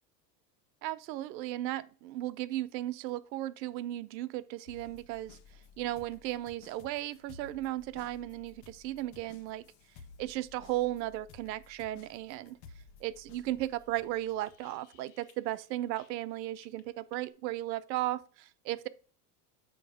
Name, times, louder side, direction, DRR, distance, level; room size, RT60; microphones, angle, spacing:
voice 1, 0.8-5.4 5.8-9.7 10.2-12.6 13.0-18.9, right 15 dB, 80° right, 0.7 m, -35 dB
sound 1, 4.7-16.3 16.6-17.3, left 5 dB, 55° left, 1.2 m, -56 dB
8.4 x 3.2 x 4.9 m
supercardioid pair, 110°, 49 cm